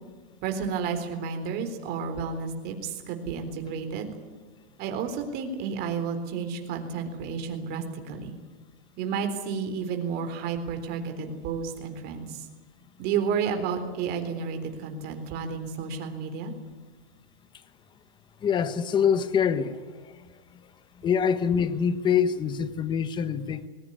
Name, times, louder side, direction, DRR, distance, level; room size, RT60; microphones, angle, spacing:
voice 1, 0.4-4.1 4.8-8.4 9.0-12.5 13.0-16.5, right 6 dB, 30° right, 3.8 m, -31 dB
voice 2, 18.4-23.7, left 7 dB, 15° left, 0.9 m, -26 dB
20.5 x 20.0 x 9.6 m
supercardioid pair, 155°, 30 cm